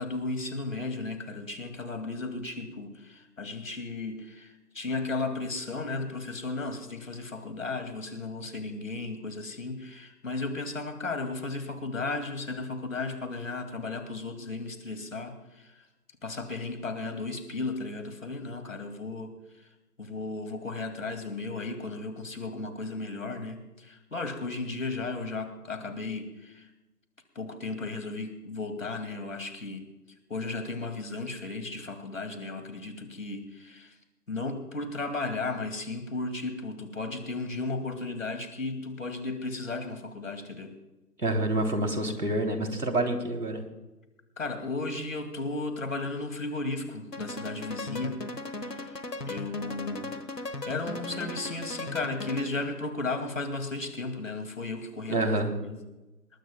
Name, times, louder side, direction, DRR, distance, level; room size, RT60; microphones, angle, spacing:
voice 1, 0.0-15.8 16.2-19.4 20.0-26.7 27.4-29.9 30.3-33.9 34.3-40.7 44.4-48.2 48.6-50.2 50.7-55.8, left 3 dB, 55° left, 7 dB, 2.5 m, -35 dB
voice 2, 41.2-43.6 55.1-55.5, right 1 dB, 75° right, 5 dB, 3.3 m, -27 dB
sound 1, 47.1-52.8, left 2 dB, 90° left, 1.6 m, -37 dB
22.5 x 20.5 x 2.3 m, 1.0 s
figure-of-eight pair, 155°, 47 cm